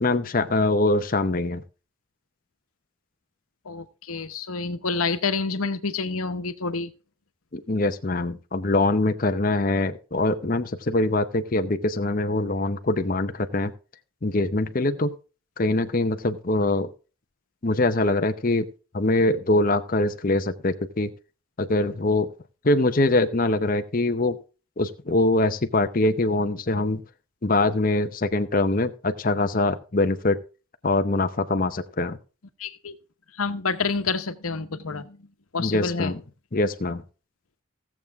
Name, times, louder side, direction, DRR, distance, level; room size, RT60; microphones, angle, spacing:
voice 1, 0.0-1.6 7.5-13.7 14.2-15.1 15.6-16.9 17.6-18.7 18.9-21.1 21.6-22.3 22.6-24.4 24.8-27.0 27.4-30.4 30.8-32.2 35.6-36.2 36.5-37.0, left 2 dB, 40° left, 8 dB, 0.7 m, -23 dB
voice 2, 3.6-6.9 32.6-32.9 33.4-35.2 35.5-36.1, left 4 dB, 85° left, 10 dB, 1.1 m, -28 dB
16.5 x 7.2 x 3.5 m, 0.35 s
head